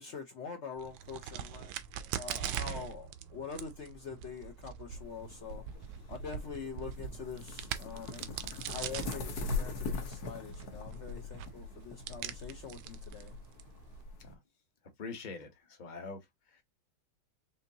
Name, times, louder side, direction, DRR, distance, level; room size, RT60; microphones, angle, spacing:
voice 1, 0.0-1.8 2.1-5.6 6.1-13.3, left 6 dB, 70° left, 0.6 m, -44 dB
Crack, 0.8-14.0, right 10 dB, 75° right, 1.3 m, -43 dB
sound 1, 4.9-14.3, left 3 dB, 55° left, 1.3 m, -42 dB
voice 2, 15.0-16.6, left 4 dB, 35° left, 0.7 m, -44 dB
5.6 x 2.7 x 2.7 m
omnidirectional pair, 2.3 m